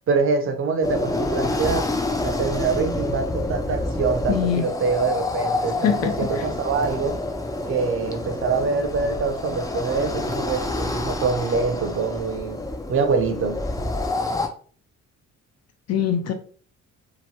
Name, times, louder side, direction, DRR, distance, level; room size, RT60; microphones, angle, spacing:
voice 1, 0.1-1.9 2.2-7.2 7.7-12.6 12.9-13.6, right 4 dB, 45° right, 0.6 m, -25 dB
sound 1, 0.8-14.5, left 2 dB, 10° left, 0.4 m, -28 dB
voice 2, 4.3-4.6 5.8-6.4 15.9-16.3, left 8 dB, 55° left, 0.6 m, -23 dB
2.9 x 2.2 x 2.7 m
cardioid pair, 90°, 30 cm